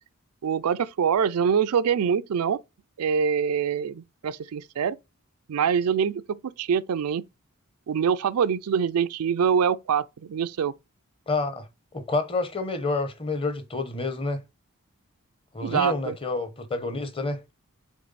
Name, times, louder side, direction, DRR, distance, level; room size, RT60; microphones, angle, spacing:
voice 1, 0.4-2.6 3.0-5.0 5.5-7.2 7.9-10.7 15.6-16.2, right 7 dB, 80° right, 0.4 m, -24 dB
voice 2, 11.3-11.7 11.9-14.4 15.5-17.4, left 3 dB, 25° left, 0.9 m, -28 dB
7.6 x 3.5 x 4.1 m
head